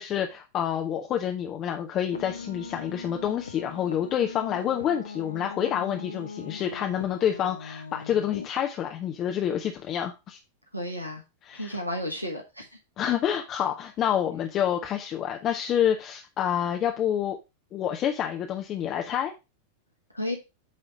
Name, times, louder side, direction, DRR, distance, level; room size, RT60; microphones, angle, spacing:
voice 1, 0.0-10.4 11.4-11.8 13.0-17.4 17.7-19.3, left 9 dB, 30° left, 4 dB, 0.8 m, -28 dB
sound 1, 2.1-8.5, left 5 dB, 75° left, 0.8 m, -40 dB
voice 2, 10.7-11.2 11.5-12.7 20.1-20.4, left 1 dB, 85° right, 3 dB, 1.2 m, -32 dB
8.6 x 3.3 x 5.1 m, 0.26 s
figure-of-eight pair, 90°, 0 cm